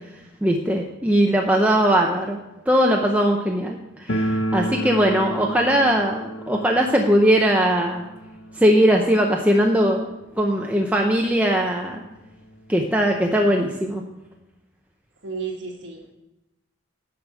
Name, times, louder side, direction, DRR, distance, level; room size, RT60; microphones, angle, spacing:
voice 1, 0.4-2.4 2.7-8.1 8.5-12.0 12.7-14.0, equal, 10° right, 0 dB, 0.6 m, -20 dB
voice 2, 1.6-2.0 15.2-16.1, right 4 dB, 65° right, 1 dB, 1.5 m, -34 dB
sound 1, 4.1-10.8 11.1-11.2 11.4-11.5 12.3-12.4 12.6-13.8, right 1 dB, 75° left, 1.0 m, -31 dB
9.5 x 5.0 x 7.5 m, 0.98 s
head